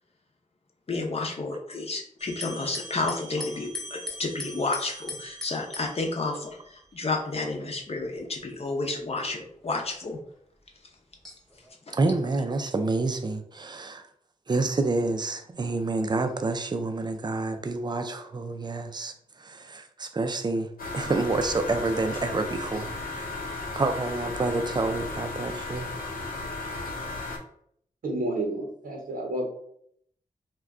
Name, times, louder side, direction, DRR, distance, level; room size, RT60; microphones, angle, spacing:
voice 1, 0.9-10.2 11.9-12.0, left 3 dB, 45° left, 0.6 m, -31 dB
sound 1, 2.2-6.9 7.8-8.2 8.9-9.0 11.2-11.7, left 1 dB, 5° left, 0.8 m, -40 dB
voice 2, 11.9-14.1 14.5-23.4 23.8-25.9, right 3 dB, 30° right, 0.4 m, -28 dB
sound 2, 20.8-27.4, left 3 dB, 85° left, 0.7 m, -35 dB
voice 3, 28.0-29.5, right 1 dB, 90° right, 0.7 m, -30 dB
2.4 x 2.2 x 3.5 m
wide cardioid pair, 80°, 14 cm